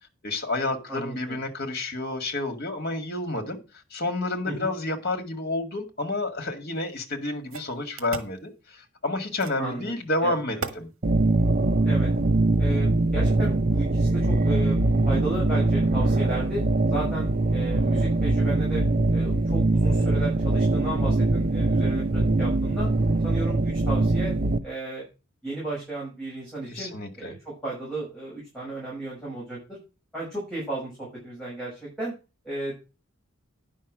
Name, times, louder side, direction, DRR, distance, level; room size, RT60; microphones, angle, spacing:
voice 1, 0.2-3.6 3.9-10.9 26.7-27.3, left 2 dB, 50° left, 2.1 m, -30 dB
voice 2, 0.9-1.4 4.4-4.7 9.6-9.9 10.2-10.3 11.8-12.1 12.6-16.6 16.9-18.8 19.1-22.9 23.2-24.3 24.6-25.0 25.4-29.8 30.1-32.1 32.4-32.8, right 2 dB, 5° left, 6.0 m, -34 dB
sound 1, 6.7-6.8 7.5-8.4 9.4-9.7 10.6-10.8, right 4 dB, 80° right, 1.3 m, -35 dB
sound 2, 11.0-24.6, right 2 dB, 45° right, 0.7 m, -22 dB
10.0 x 5.8 x 6.3 m
head